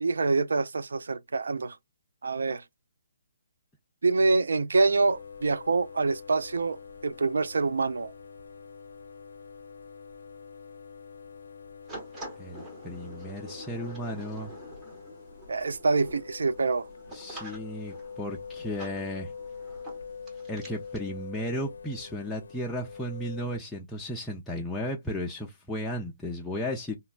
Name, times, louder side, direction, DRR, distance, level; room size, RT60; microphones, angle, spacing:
voice 1, 0.0-1.8 2.2-2.6 4.0-6.8 7.0-8.1 15.5-16.9, right 3 dB, 80° right, 0.3 m, -26 dB
sound 1, 5.0-23.6, left 5 dB, 80° left, 0.4 m, -44 dB
sound 2, 11.9-21.1, right 1 dB, 15° right, 0.9 m, -47 dB
voice 2, 12.4-14.5 17.1-19.3 20.5-27.0, equal, 5° left, 0.4 m, -35 dB
3.1 x 2.2 x 2.3 m
hypercardioid pair, 155°, 0 cm